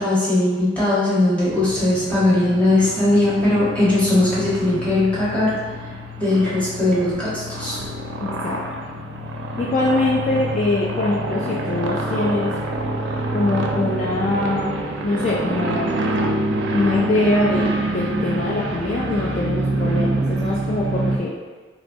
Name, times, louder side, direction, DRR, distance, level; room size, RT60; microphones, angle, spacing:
voice 1, 0.0-5.5 6.2-7.8, left 2 dB, 10° left, -10 dB, 1.1 m, -19 dB
sound 1, 1.5-21.2, right 1 dB, 85° right, 0.4 m, -26 dB
voice 2, 8.2-8.6 9.6-12.6 13.3-14.7 15.0-15.9 16.7-21.3, left 2 dB, 40° left, -6 dB, 0.4 m, -23 dB
3.2 x 3.0 x 2.6 m, 1.4 s
head